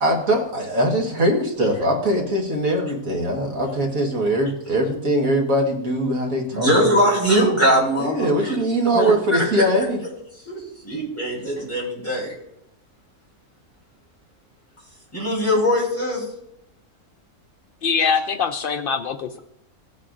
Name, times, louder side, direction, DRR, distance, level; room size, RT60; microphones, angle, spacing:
voice 1, 0.0-6.9 8.0-10.0, right 1 dB, 65° right, 1 dB, 1.9 m, -21 dB
voice 2, 6.5-8.6 8.9-9.7 10.4-12.3 15.1-16.2, equal, 10° left, -5 dB, 4.4 m, -21 dB
voice 3, 17.8-19.4, left 5 dB, 85° left, 8 dB, 0.4 m, -23 dB
17.0 x 8.3 x 2.5 m, 0.77 s
omnidirectional pair, 1.6 m